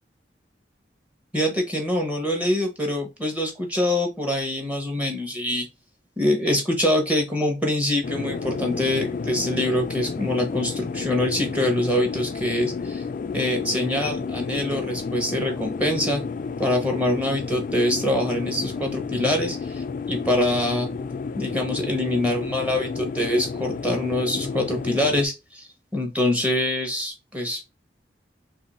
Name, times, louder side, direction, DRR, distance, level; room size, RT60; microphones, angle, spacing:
voice 1, 1.3-5.7 6.2-13.0 13.3-16.2 16.6-20.9 21.4-27.6, left 1 dB, 10° right, 1 dB, 0.9 m, -24 dB
sound 1, 8.0-25.3, left 4 dB, 50° left, 0.3 m, -31 dB
2.6 x 2.5 x 4.0 m, 0.25 s
head